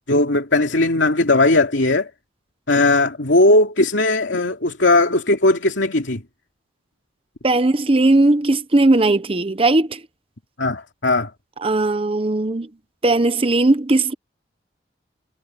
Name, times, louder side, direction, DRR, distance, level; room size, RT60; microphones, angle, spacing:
voice 1, 0.1-2.1 2.7-6.2 10.6-11.3, left 2 dB, 85° left, 2.6 m, -17 dB
voice 2, 7.4-10.0 11.6-12.7 13.0-14.1, right 2 dB, 30° right, 0.8 m, -17 dB
head